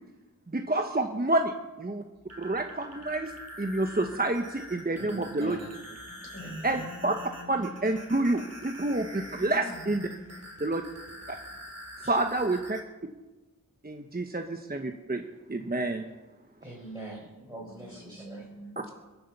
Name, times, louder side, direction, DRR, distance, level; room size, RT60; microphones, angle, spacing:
voice 1, 0.5-2.0 2.4-3.3 3.6-5.6 6.6-7.1 7.5-10.0 10.6-10.8 12.0-12.8 13.8-15.2 15.5-16.1, right 2 dB, 25° right, 5 dB, 1.1 m, -28 dB
sound 1, 2.1-12.8, equal, 45° right, 3.3 m, -45 dB
voice 2, 5.0-5.7 6.4-6.8 16.6-18.4, right 2 dB, 10° right, -5 dB, 5.0 m, -43 dB
voice 3, 6.1-7.9 9.3-10.4 12.0-12.2 17.7-18.9, left 1 dB, 40° left, 1 dB, 5.7 m, -45 dB
22.5 x 8.1 x 6.8 m, 1.1 s
wide cardioid pair, 50°, 34 cm